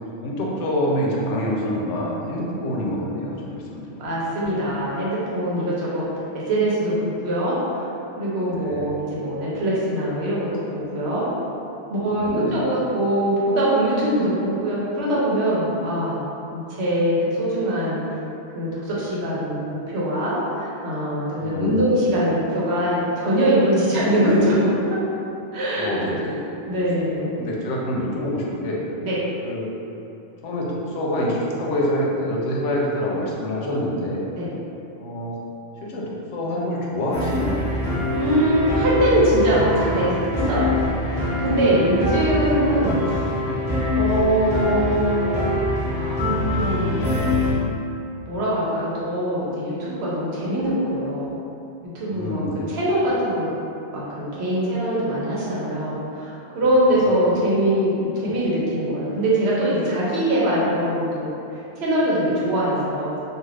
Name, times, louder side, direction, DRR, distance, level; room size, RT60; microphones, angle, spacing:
voice 1, 0.2-4.2 8.5-8.9 12.1-12.6 21.4-21.9 25.7-26.5 26.8-26.9 27.2-28.8 29.4-29.7 30.4-34.2 35.0-35.4 35.8-37.7 52.1-52.8, equal, 85° left, -3 dB, 0.9 m, -26 dB
voice 2, 4.0-6.1 6.3-7.9 8.2-11.3 11.9-18.0 18.5-25.0 25.5-26.1 26.7-27.4 29.0-29.2 34.4-34.5 38.1-40.7 41.1-43.2 44.0-45.3 45.9-47.1 48.3-51.3 51.9-53.5 53.9-61.3 61.8-63.2, equal, 70° right, -7 dB, 0.9 m, -22 dB
sound 1, 37.1-47.5, left 1 dB, 5° right, 1.0 m, -24 dB
2.4 x 2.4 x 3.2 m, 2.8 s
omnidirectional pair, 1.2 m